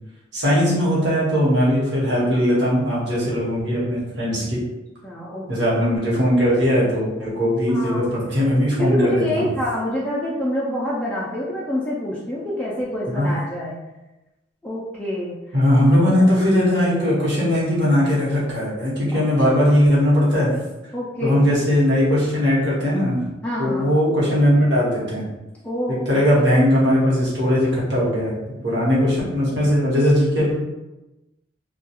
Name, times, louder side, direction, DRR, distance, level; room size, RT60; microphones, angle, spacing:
voice 1, 0.3-4.6 5.5-9.5 13.1-13.3 15.5-20.5 21.2-23.2 23.6-25.2 26.1-28.3 28.6-30.5, equal, 65° right, -7 dB, 1.0 m, -19 dB
voice 2, 5.0-5.5 7.7-8.3 8.8-13.8 14.6-15.3 19.1-19.2 20.9-21.4 23.4-23.9 25.6-26.5, left 1 dB, 5° left, -7 dB, 0.3 m, -26 dB
2.3 x 2.2 x 2.8 m, 1.0 s
head